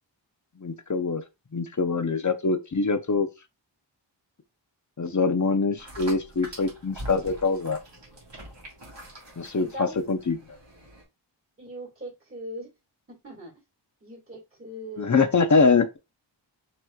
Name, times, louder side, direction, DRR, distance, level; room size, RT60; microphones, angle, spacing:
voice 1, 0.6-1.2 1.5-3.3 5.0-7.8 9.4-10.4 15.0-16.0, left 4 dB, 40° left, 0.7 m, -24 dB
sound 1, 5.8-11.0, right 1 dB, 70° right, 1.8 m, -44 dB
voice 2, 9.6-10.1 11.6-12.7 13.1-13.5 14.0-15.3, equal, 30° right, 2.2 m, -40 dB
6.1 x 3.1 x 2.3 m
wide cardioid pair, 55°, 45 cm